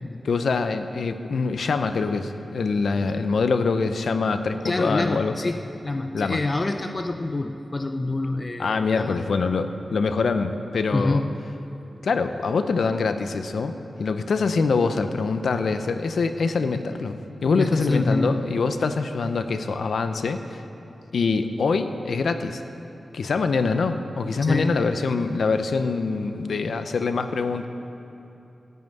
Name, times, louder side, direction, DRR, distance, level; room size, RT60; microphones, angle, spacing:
voice 1, 0.2-5.3 6.1-6.4 8.6-11.2 12.0-13.7 14.0-20.6 21.1-22.6 23.1-27.7, left 4 dB, 75° left, 9 dB, 0.6 m, -24 dB
voice 2, 4.6-9.2 10.9-11.3 17.6-18.4 24.4-24.8, left 2 dB, 30° left, 7 dB, 0.5 m, -26 dB
15.0 x 5.6 x 9.2 m, 2.9 s
wide cardioid pair, 115°, 0 cm